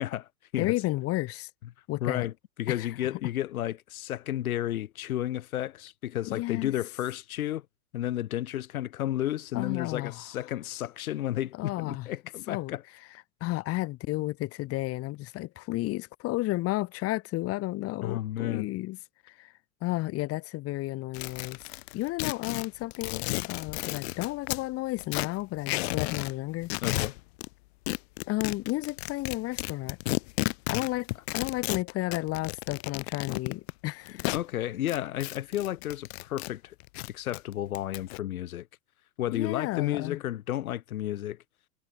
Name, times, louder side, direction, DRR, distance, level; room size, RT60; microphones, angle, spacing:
voice 1, 0.0-0.7 2.0-2.3 2.6-7.7 7.9-12.8 18.0-18.7 26.8-27.1 34.3-36.8 37.1-38.7 39.2-41.4, left 13 dB, 90° left, 3.7 m, -32 dB
voice 2, 0.6-1.5 1.9-2.3 2.7-2.9 6.3-6.7 9.5-10.2 11.6-12.1 12.5-12.7 13.4-19.0 19.3-19.5 19.8-21.6 21.9-26.7 28.3-30.0 30.7-34.3 39.3-40.2, left 18 dB, 35° left, 4.2 m, -32 dB
sound 1, 21.1-24.6 25.0-26.3 26.6-27.5 27.9-34.4 34.9-36.5 36.8-38.2, left 23 dB, 50° left, 0.8 m, -33 dB
supercardioid pair, 155°, 42 cm